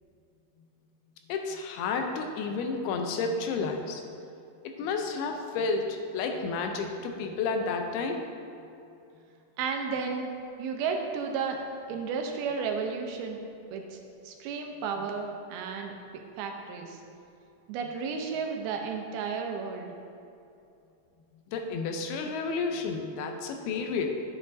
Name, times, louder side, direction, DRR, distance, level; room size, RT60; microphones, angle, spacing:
voice 1, 1.3-4.0 4.8-8.3 21.5-24.1, left 4 dB, 85° left, 4 dB, 2.6 m, -31 dB
voice 2, 9.6-10.3 10.6-11.6 11.9-13.4 13.7-14.0 14.2-15.9 16.4-17.0 17.7-19.9, right 5 dB, 85° right, 3 dB, 2.7 m, -33 dB
11.0 x 7.9 x 2.7 m, 2.6 s
omnidirectional pair, 4.4 m